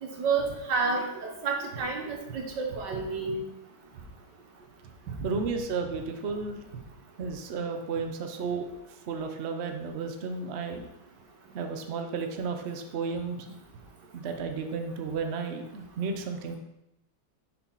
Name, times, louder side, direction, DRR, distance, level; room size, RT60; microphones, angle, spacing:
voice 1, 0.0-3.4, right 4 dB, 60° right, 1 dB, 1.8 m, -30 dB
voice 2, 5.2-6.6 7.2-8.7 9.1-10.9 11.5-13.5 14.1-16.6, right 4 dB, 85° right, 5 dB, 0.5 m, -33 dB
6.7 x 4.3 x 5.5 m, 0.86 s
omnidirectional pair, 2.2 m